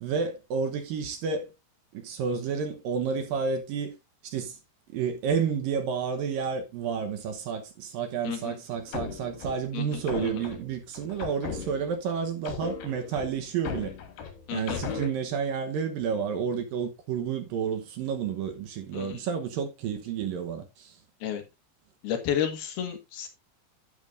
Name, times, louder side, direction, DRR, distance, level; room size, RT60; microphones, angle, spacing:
voice 1, 0.0-1.5 1.9-4.0 4.2-4.6 4.9-13.9 14.5-20.9, right 6 dB, 70° right, 2.5 m, -30 dB
voice 2, 8.3-8.6 9.7-10.3 14.5-14.8 18.9-19.2 21.2-21.4 22.0-23.3, left 9 dB, 70° left, 3.4 m, -32 dB
sound 1, 8.7-12.0 12.5-15.1, left 6 dB, 85° left, 4.2 m, -37 dB
11.0 x 9.1 x 2.6 m
omnidirectional pair, 4.7 m